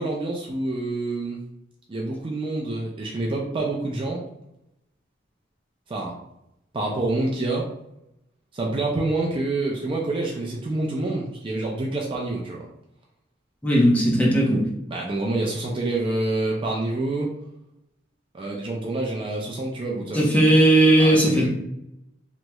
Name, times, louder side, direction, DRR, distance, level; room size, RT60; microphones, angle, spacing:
voice 1, 0.0-1.4 1.9-4.2 5.9-6.2 6.7-7.7 8.5-12.6 14.9-17.3 18.3-20.2 21.0-21.5, right 2 dB, 25° right, -2 dB, 0.4 m, -27 dB
voice 2, 13.6-14.7 20.1-21.5, right 1 dB, 10° left, -3 dB, 0.7 m, -17 dB
2.9 x 2.9 x 2.2 m, 0.82 s
head